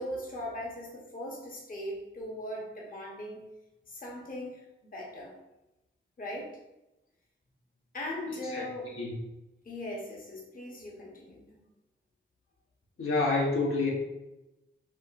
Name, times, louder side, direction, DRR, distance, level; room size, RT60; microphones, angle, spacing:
voice 1, 0.0-3.4 3.9-5.3 6.2-6.6 7.9-8.9 9.6-11.6, left 1 dB, 40° left, -2 dB, 0.9 m, -39 dB
voice 2, 13.0-13.9, left 3 dB, 85° left, -3 dB, 0.9 m, -28 dB
4.9 x 2.5 x 2.4 m, 0.95 s
wide cardioid pair, 120°, 21 cm